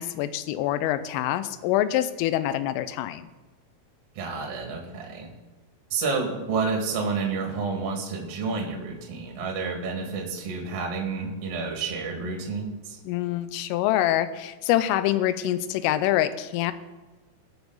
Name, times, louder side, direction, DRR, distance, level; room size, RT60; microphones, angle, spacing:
voice 1, 0.0-3.3 13.1-16.7, left 13 dB, 90° left, 13 dB, 3.2 m, -25 dB
voice 2, 4.1-5.3 5.9-13.0, right 4 dB, 45° right, 1 dB, 2.3 m, -30 dB
20.5 x 7.1 x 4.0 m, 1.3 s
omnidirectional pair, 5.7 m